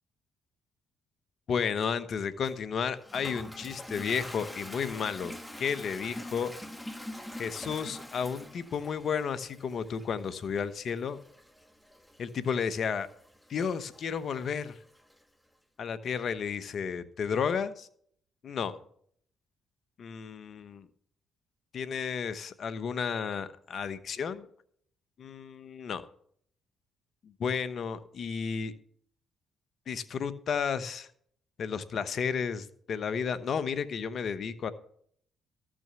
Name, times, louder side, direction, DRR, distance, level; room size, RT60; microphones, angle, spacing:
voice 1, 1.5-5.3 5.6-6.5 7.3-11.2 12.2-13.1 13.5-14.8 15.8-17.9 18.4-18.7 20.0-20.9 21.7-24.5 25.2-26.0 27.2-28.7 29.9-31.1 31.6-34.7, left 6 dB, 60° left, 1.0 m, -32 dB
Toilet flush, 2.5-15.2, left 1 dB, 5° left, 1.5 m, -46 dB
13.5 x 6.3 x 6.9 m
supercardioid pair, 55°, 0 cm